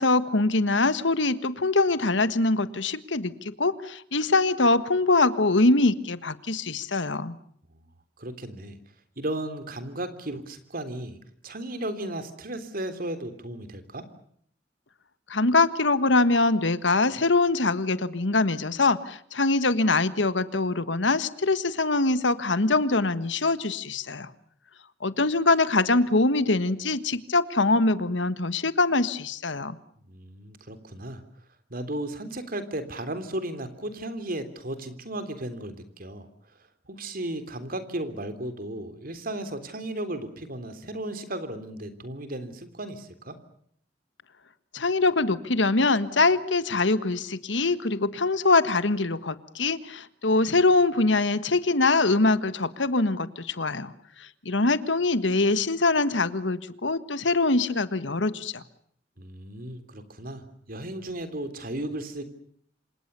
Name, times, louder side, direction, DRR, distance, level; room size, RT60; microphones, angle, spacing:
voice 1, 0.0-7.3 15.3-24.3 25.0-29.8 44.7-53.9 54.2-58.6, left 3 dB, 80° left, 13 dB, 1.6 m, -23 dB
voice 2, 8.2-8.8 9.2-11.2 11.4-14.1 30.1-31.2 31.7-36.3 36.9-43.4 59.2-62.2, right 1 dB, 50° right, 10 dB, 3.4 m, -35 dB
27.5 x 26.5 x 6.9 m, 0.66 s
head